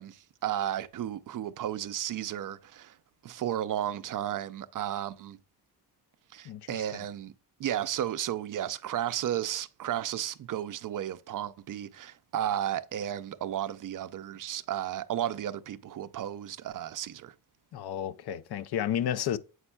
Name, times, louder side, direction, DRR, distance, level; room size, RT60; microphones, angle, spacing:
voice 1, 0.0-3.0 3.2-5.4 6.3-7.3 7.6-17.3, right 11 dB, 55° right, 0.5 m, -33 dB
voice 2, 17.7-19.4, left 10 dB, 70° left, 0.5 m, -31 dB
7.9 x 5.3 x 2.3 m
cardioid pair, 125°, 41 cm